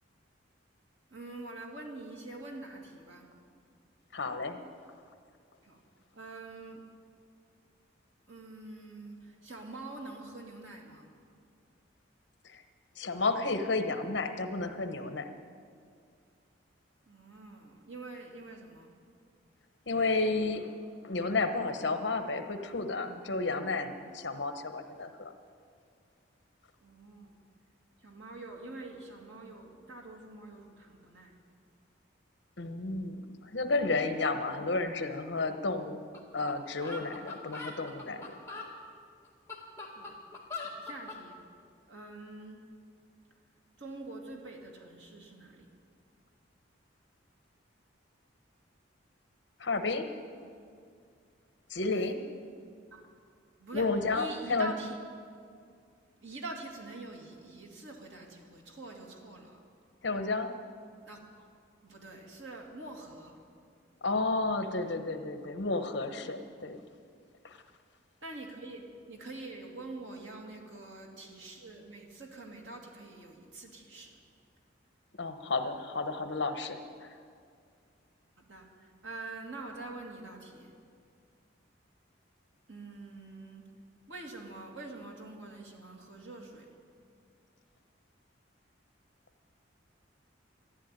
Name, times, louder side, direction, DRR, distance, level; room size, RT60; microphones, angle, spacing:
voice 1, 1.1-3.3 5.6-5.8 6.1-6.8 8.3-11.1 17.1-18.9 26.8-27.4 28.0-31.3 39.9-40.2 40.6-41.4 41.9-42.6 43.8-45.7 51.8-52.1 52.9-53.0 53.6-53.8 54.1-55.0 56.2-59.6 61.1-61.4 61.8-63.4 68.2-74.2 78.5-80.7 82.7-83.7 84.1-86.7, right 2 dB, 70° right, 0 dB, 2.4 m, -45 dB
voice 2, 4.1-4.6 12.4-12.6 13.0-15.3 19.9-20.7 21.0-25.3 32.6-36.0 36.3-38.2 49.6-50.1 51.7-52.2 53.7-54.7 60.0-60.5 64.0-66.8 67.4-67.6 75.2-77.2, left 3 dB, 65° left, 7 dB, 1.1 m, -32 dB
sound 1, 36.1-36.2 36.5-36.6 36.8-38.7 39.3-41.2, left 3 dB, 15° left, 1.9 m, -41 dB
14.0 x 11.0 x 9.1 m, 2.2 s
head